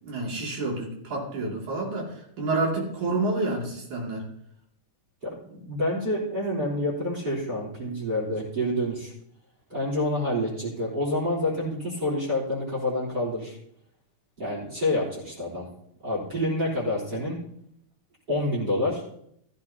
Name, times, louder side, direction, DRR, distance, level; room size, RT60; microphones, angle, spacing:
voice 1, 0.0-4.2, right 2 dB, 65° right, -2 dB, 4.1 m, -29 dB
voice 2, 5.7-9.1 9.7-13.6 14.4-15.7 16.0-17.4 18.3-19.0, left 1 dB, 30° right, -6 dB, 4.0 m, -28 dB
15.0 x 14.5 x 2.9 m, 0.71 s
omnidirectional pair, 3.7 m